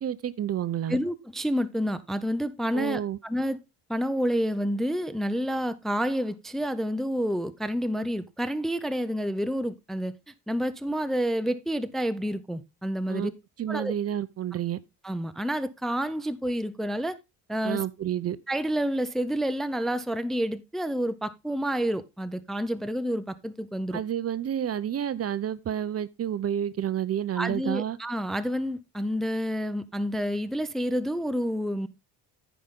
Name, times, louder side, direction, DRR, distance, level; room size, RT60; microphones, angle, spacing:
voice 1, 0.0-1.0 2.7-3.2 13.1-13.3 13.6-14.8 17.6-18.4 23.9-28.0, right 10 dB, 35° right, 0.7 m, -29 dB
voice 2, 0.9-3.6 3.9-10.1 10.5-13.3 13.7-13.9 15.0-17.2 17.5-17.8 18.5-24.0 27.3-31.9, equal, ahead, 0.6 m, -29 dB
14.0 x 5.2 x 3.6 m
cardioid pair, 105°, 40 cm